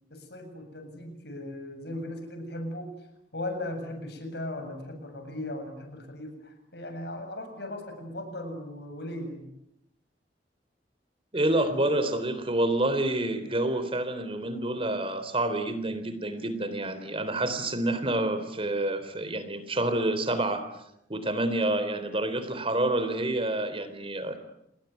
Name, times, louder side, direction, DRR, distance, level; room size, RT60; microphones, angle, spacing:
voice 1, 0.1-2.9 3.3-9.5, left 1 dB, 65° left, 6 dB, 7.9 m, -37 dB
voice 2, 11.3-20.7 21.1-24.4, right 1 dB, 30° right, 11 dB, 3.7 m, -28 dB
29.5 x 21.0 x 9.4 m, 0.79 s
head